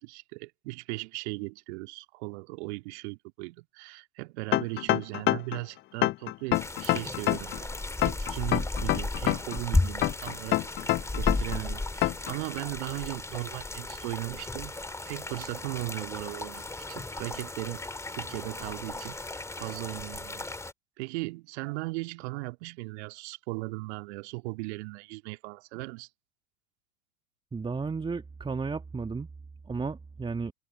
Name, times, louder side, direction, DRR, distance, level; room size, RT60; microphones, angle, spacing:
voice 1, 0.0-7.8 8.0-14.7 15.1-17.8 18.1-20.5 21.0-26.1, right 24 dB, 50° right, 2.3 m, -37 dB
sound 1, 4.5-5.6 6.0-7.6 8.0-9.6 10.0-11.6 12.0-12.3, left 16 dB, 25° left, 0.7 m, -26 dB
sound 2, 6.5-20.7, left 2 dB, 5° left, 2.6 m, -34 dB
voice 2, 27.5-29.3 29.7-30.5, right 4 dB, 10° right, 2.1 m, -33 dB
figure-of-eight pair, 90°, 41 cm